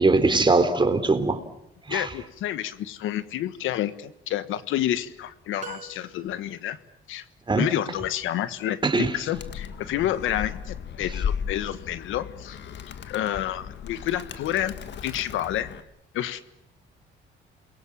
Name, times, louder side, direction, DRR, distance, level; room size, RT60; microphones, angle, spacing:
voice 1, 0.0-1.4 1.9-2.1 7.5-7.6 8.8-9.1, right 3 dB, 25° right, 9 dB, 3.6 m, -21 dB
voice 2, 1.9-6.8 7.1-7.2 7.6-12.6 13.0-14.7 15.0-15.7 16.1-16.4, left 12 dB, 90° left, 13 dB, 1.5 m, -29 dB
sound 1, 5.6-6.7, right 5 dB, 40° right, 5.5 m, -42 dB
Animal, 9.3-15.8, left 7 dB, 65° left, 1.8 m, -35 dB
28.5 x 22.5 x 7.5 m, 0.80 s
cardioid pair, 90°, 20 cm